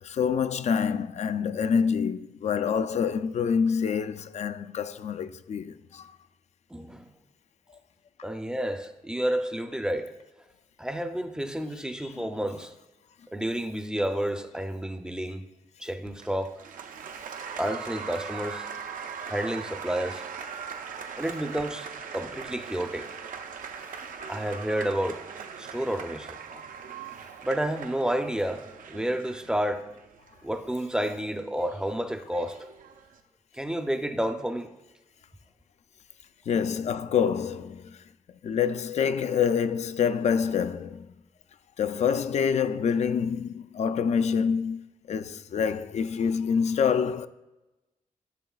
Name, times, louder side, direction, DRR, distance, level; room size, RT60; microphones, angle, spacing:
voice 1, 0.0-6.1 12.0-12.2 24.2-24.3 36.5-37.9 38.4-41.1 41.8-47.3, left 7 dB, 55° left, 0.4 m, -26 dB
voice 2, 6.7-7.1 8.2-10.1 10.8-12.7 13.3-15.4 15.8-16.6 17.6-18.7 19.3-20.3 21.2-21.9 22.1-23.1 24.3-25.2 25.6-26.6 27.4-29.9 30.4-32.6 33.5-34.7, right 1 dB, 5° right, 0.5 m, -30 dB
Applause, 16.1-33.2, right 6 dB, 80° right, 0.6 m, -41 dB
13.0 x 6.6 x 2.3 m
wide cardioid pair, 125°, 14 cm